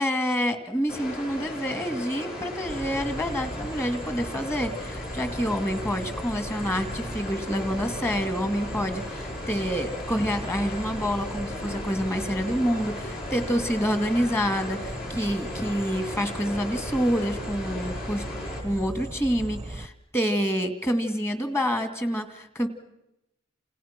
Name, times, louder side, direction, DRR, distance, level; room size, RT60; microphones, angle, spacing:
voice 1, 0.0-18.2 18.6-22.7, equal, 15° left, 9 dB, 2.2 m, -27 dB
sound 1, 0.9-18.6, left 2 dB, 50° left, 7.8 m, -37 dB
sound 2, 2.7-19.9, right 1 dB, 20° right, 0.9 m, -38 dB
29.5 x 28.5 x 6.0 m, 0.90 s
head